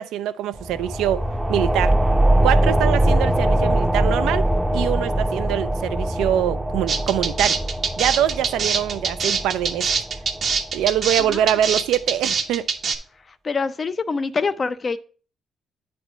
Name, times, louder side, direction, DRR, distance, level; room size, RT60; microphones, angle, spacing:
voice 1, 0.0-2.0 2.4-4.5 4.7-7.6 8.0-9.9 10.7-12.7, right 11 dB, 90° right, 0.3 m, -23 dB
sound 1, 0.5-11.8, right 1 dB, 10° right, 0.6 m, -22 dB
sound 2, 6.9-13.0, right 5 dB, 50° right, 0.7 m, -23 dB
voice 2, 13.4-15.0, left 4 dB, 35° left, 0.5 m, -24 dB
8.8 x 3.3 x 4.8 m
cardioid pair, 90°, 0 cm